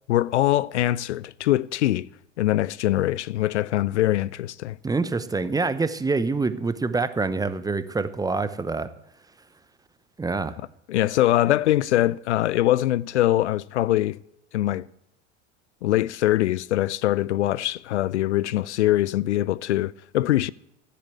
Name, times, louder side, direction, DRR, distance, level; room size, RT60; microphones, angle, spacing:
voice 1, 0.1-2.1 2.4-4.8 10.9-14.2 14.5-14.8 15.8-20.5, left 14 dB, 70° left, 0.5 m, -23 dB
voice 2, 4.8-8.9 10.2-10.6, right 3 dB, 10° right, 0.8 m, -26 dB
13.5 x 8.5 x 8.2 m
figure-of-eight pair, 75°, 36 cm